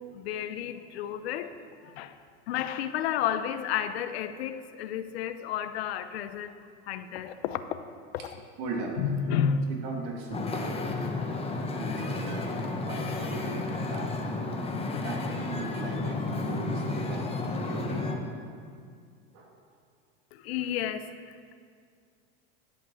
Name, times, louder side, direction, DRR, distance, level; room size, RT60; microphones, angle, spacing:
voice 1, 0.0-1.5 1.8-2.2 2.5-6.6 6.9-7.9 8.2-8.3 9.0-9.7 20.3-21.5, left 8 dB, 85° left, 10 dB, 0.7 m, -31 dB
voice 2, 8.6-9.0 9.7-11.2 11.8-14.6 15.0-18.1 19.3-19.5, right 3 dB, 60° right, 0 dB, 2.4 m, -38 dB
Wind / Ocean, 10.3-18.2, left 3 dB, 20° left, 1.2 m, -32 dB
11.5 x 5.4 x 7.0 m, 2.2 s
supercardioid pair, 115°, 31 cm